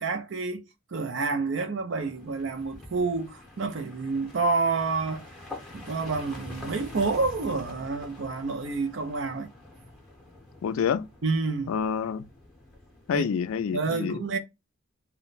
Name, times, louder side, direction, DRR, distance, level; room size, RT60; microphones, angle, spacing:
voice 1, 0.0-5.2 5.7-9.5 11.2-11.7 13.1-13.2 13.7-14.4, right 4 dB, 60° right, 0.5 m, -29 dB
sound 1, 2.0-13.8, left 2 dB, 5° left, 0.7 m, -46 dB
voice 2, 10.6-11.1 11.7-12.3 13.1-14.2, left 7 dB, 85° left, 0.3 m, -27 dB
2.2 x 2.1 x 3.8 m
head